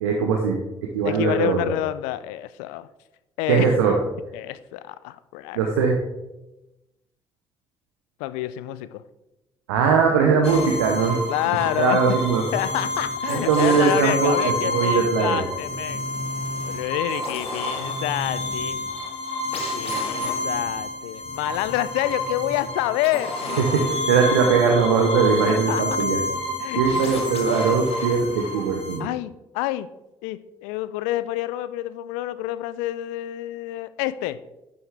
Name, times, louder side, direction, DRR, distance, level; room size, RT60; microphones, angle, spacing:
voice 1, 0.0-1.8 3.5-4.0 5.5-6.0 9.7-11.2 11.8-12.4 13.3-15.4 23.6-26.2 26.8-29.1, right 5 dB, 80° right, 2 dB, 0.9 m, -21 dB
voice 2, 1.0-2.9 3.4-3.7 4.3-5.7 8.2-9.0 11.3-12.2 12.5-16.1 16.6-18.8 19.7-23.6 25.4-25.8 26.6-27.0 29.0-29.9 30.2-34.4, left 15 dB, 70° left, 15 dB, 0.5 m, -28 dB
sound 1, 10.4-29.0, left 1 dB, 50° left, 2.0 m, -28 dB
10.5 x 7.0 x 3.4 m, 0.97 s
figure-of-eight pair, 45°, 13 cm